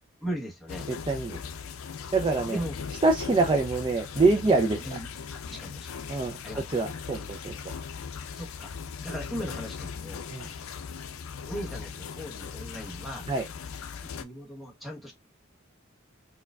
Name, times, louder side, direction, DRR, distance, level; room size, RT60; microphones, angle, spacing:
voice 1, 0.2-0.9 2.5-2.8 3.3-3.5 4.8-6.0 6.4-6.8 7.1-7.3 8.3-8.7 9.0-10.2 11.5-13.3 14.0-15.1, equal, ahead, 1.0 m, -38 dB
sound 1, 0.7-14.2, left 6 dB, 85° left, 0.5 m, -39 dB
voice 2, 0.9-1.4 2.1-2.6 3.0-4.8 6.1-6.4 6.7-7.7 10.3-10.5 13.3-13.4, right 3 dB, 25° right, 0.4 m, -25 dB
4.5 x 2.3 x 2.2 m
head